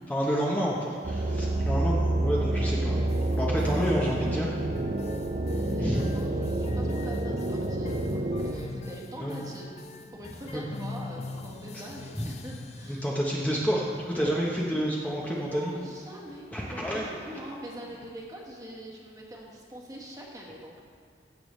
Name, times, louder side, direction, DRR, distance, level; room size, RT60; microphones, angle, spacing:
voice 1, 0.1-3.0 3.4-4.5 5.8-6.1 9.2-9.4 10.5-10.6 12.2-12.3 12.9-15.7 16.5-17.1, equal, 10° left, -4 dB, 0.9 m, -29 dB
sound 1, 1.0-8.5, right 2 dB, 40° right, 0.5 m, -28 dB
sound 2, 3.0-18.1, left 2 dB, 40° left, 0.5 m, -43 dB
voice 2, 5.5-9.7 10.1-13.1 14.2-14.4 15.3-20.8, right 1 dB, 20° right, -2 dB, 1.4 m, -43 dB
15.5 x 6.8 x 3.2 m, 2.1 s
head